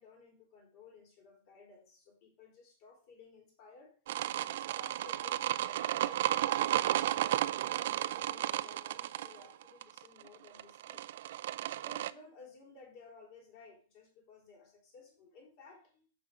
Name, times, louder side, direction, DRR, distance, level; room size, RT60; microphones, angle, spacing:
voice 1, 0.0-3.9 4.4-11.0 11.8-16.1, left 4 dB, 45° left, 1 dB, 3.4 m, -57 dB
sound 1, 4.1-12.1, right 13 dB, 65° right, 0.4 m, -33 dB
7.2 x 5.5 x 5.0 m, 0.39 s
supercardioid pair, 155°, 0 cm